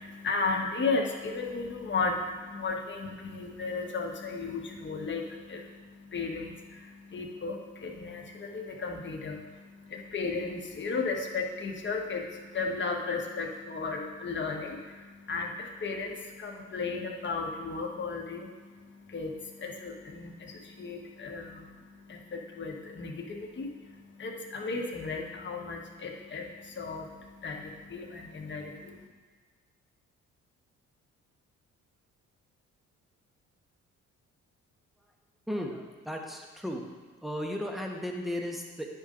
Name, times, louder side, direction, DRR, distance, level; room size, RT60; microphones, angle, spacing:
voice 1, 0.0-29.1, left 4 dB, 40° left, 1 dB, 1.3 m, -35 dB
voice 2, 35.5-36.8 37.2-38.9, equal, ahead, 1 dB, 1.2 m, -35 dB
9.6 x 5.3 x 3.8 m, 1.5 s
cardioid pair, 90°, 30 cm